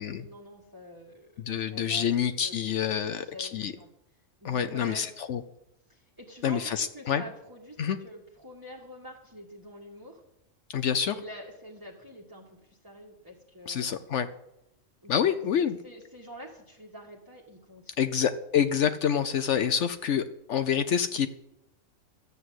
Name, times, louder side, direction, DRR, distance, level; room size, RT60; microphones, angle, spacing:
voice 1, 0.0-2.1 2.4-2.6 3.0-3.9 4.4-5.1 5.9-10.2 11.1-14.0 15.0-18.1, equal, 15° right, -2 dB, 1.7 m, -47 dB
voice 2, 1.4-3.7 4.4-5.4 6.4-7.2 7.8-8.0 10.7-11.2 13.7-14.3 15.1-15.8 18.0-21.3, left 8 dB, 70° left, 10 dB, 1.0 m, -27 dB
13.5 x 8.1 x 7.8 m, 0.84 s
omnidirectional pair, 1.3 m